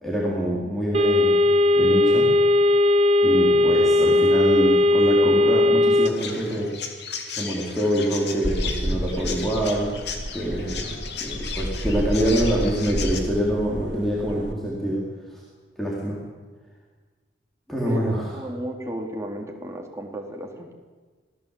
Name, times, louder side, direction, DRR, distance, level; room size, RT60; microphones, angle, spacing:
voice 1, 0.0-1.5 1.7-2.3 3.2-6.7 7.4-9.9 10.3-15.0 15.3-15.4 15.8-16.2 17.7-18.3, right 1 dB, ahead, -5 dB, 4.4 m, -25 dB
sound 1, 0.9-6.1, left 2 dB, 35° right, 1.2 m, -18 dB
Chirp tweet, 6.1-13.2, left 6 dB, 65° left, 2.9 m, -35 dB
sound 2, 8.4-14.5, equal, 70° right, 2.8 m, -31 dB
voice 2, 18.3-20.7, equal, 15° right, 2 dB, 3.3 m, -33 dB
26.5 x 18.0 x 8.6 m, 1.4 s
head